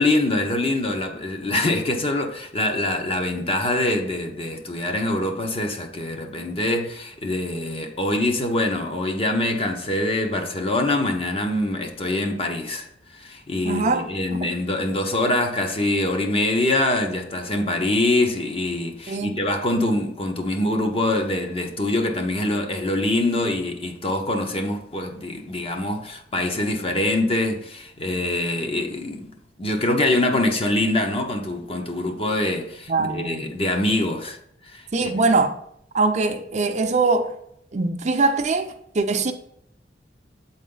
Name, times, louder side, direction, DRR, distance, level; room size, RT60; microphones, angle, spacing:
voice 1, 0.0-12.9 13.1-29.3 29.6-34.4 34.7-35.2, left 2 dB, 35° left, 0.8 m, -24 dB
voice 2, 13.6-14.1 19.1-19.4 32.9-33.4 34.9-35.5 35.9-37.3 37.7-38.7 38.9-39.3, right 3 dB, 40° right, 0.5 m, -22 dB
7.6 x 4.1 x 3.8 m
head